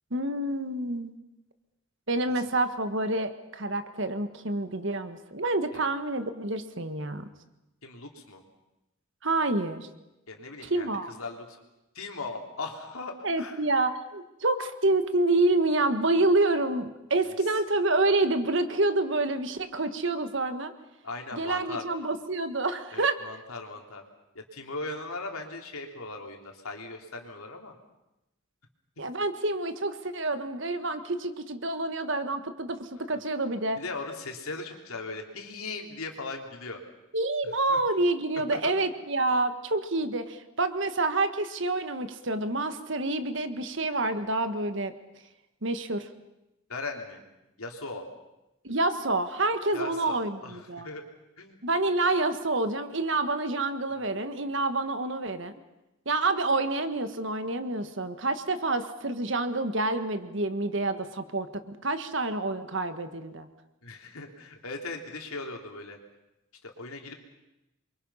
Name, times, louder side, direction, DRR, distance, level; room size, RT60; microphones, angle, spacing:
voice 1, 0.1-1.2 2.1-7.3 9.2-9.9 10.6-11.1 13.2-20.7 21.3-23.2 29.0-33.8 37.1-44.9 45.6-46.1 48.6-50.9 51.6-55.5 56.0-63.5, right 2 dB, 60° right, 9 dB, 1.6 m, -28 dB
voice 2, 7.8-8.4 10.3-11.6 11.9-13.6 21.0-21.8 22.9-24.0 24.3-27.8 33.1-33.2 33.7-36.8 37.4-37.8 38.5-38.7 46.7-47.2 47.6-48.0 49.7-51.0 51.4-51.6 53.9-54.1 63.8-66.0 66.6-67.1, left 3 dB, 85° left, 3 dB, 3.4 m, -39 dB
27.5 x 23.5 x 5.7 m, 0.93 s
head